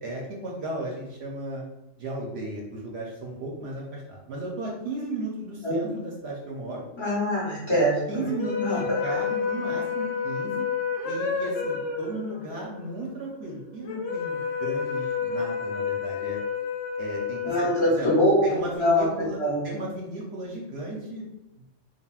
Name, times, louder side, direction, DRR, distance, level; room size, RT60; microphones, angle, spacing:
voice 1, 0.0-1.6 2.0-6.8 8.1-10.7 11.0-16.4 17.0-18.1 18.4-21.3, right 1 dB, 65° right, -2 dB, 0.8 m, -35 dB
voice 2, 7.0-8.2 8.6-8.8 17.4-19.6, equal, 25° left, -8 dB, 0.8 m, -23 dB
sound 1, 8.2-18.6, left 6 dB, 85° left, 1.0 m, -30 dB
3.3 x 2.3 x 2.3 m, 0.91 s
omnidirectional pair, 1.3 m